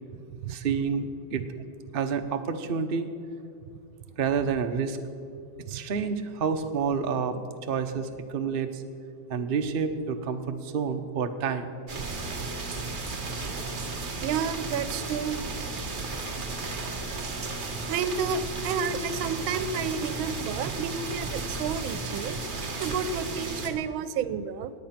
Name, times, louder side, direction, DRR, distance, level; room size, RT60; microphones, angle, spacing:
voice 1, 0.5-1.1 1.3-1.4 1.9-3.1 4.2-5.0 5.7-8.8 9.3-11.7, right 6 dB, 65° right, 6 dB, 0.5 m, -29 dB
sound 1, 11.9-23.7, right 3 dB, 30° right, 1.1 m, -34 dB
voice 2, 14.2-15.4 17.9-22.4 22.8-24.7, right 6 dB, 85° right, 14 dB, 1.5 m, -31 dB
18.5 x 8.6 x 5.9 m, 2.5 s
omnidirectional pair, 2.2 m